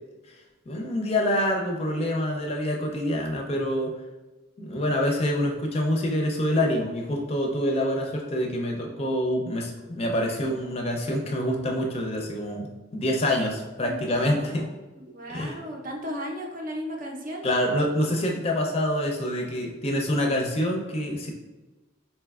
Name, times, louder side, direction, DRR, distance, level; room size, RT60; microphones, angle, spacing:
voice 1, 0.7-3.9 4.6-14.7 15.3-15.6 17.4-21.3, left 1 dB, 30° left, 2 dB, 0.5 m, -26 dB
voice 2, 13.8-14.7 15.1-17.5, equal, 45° right, 1 dB, 0.6 m, -35 dB
4.4 x 3.3 x 2.3 m, 1.2 s
head